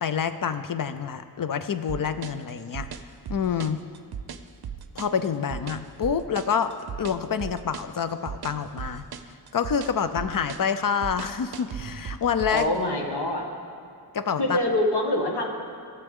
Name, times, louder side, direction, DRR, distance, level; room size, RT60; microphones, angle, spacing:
voice 1, 0.0-2.9 3.3-3.8 5.0-6.7 7.0-9.0 9.5-12.7 14.1-14.6, left 7 dB, 55° left, 11 dB, 0.5 m, -27 dB
sound 1, 1.9-12.8, right 8 dB, 65° right, 0.5 m, -37 dB
voice 2, 12.5-13.5 14.4-15.5, left 1 dB, 75° left, 1 dB, 1.2 m, -25 dB
14.5 x 6.8 x 3.6 m, 2.4 s
wide cardioid pair, 70°, 40 cm